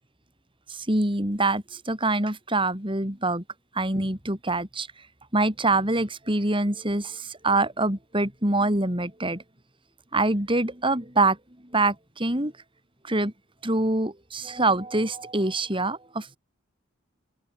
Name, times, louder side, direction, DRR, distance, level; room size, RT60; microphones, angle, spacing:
voice 1, 0.7-3.4 3.7-4.9 5.3-9.4 10.1-11.4 11.7-12.5 13.0-13.3 13.6-16.4, right 2 dB, 25° right, 4.7 m, -25 dB
open air
head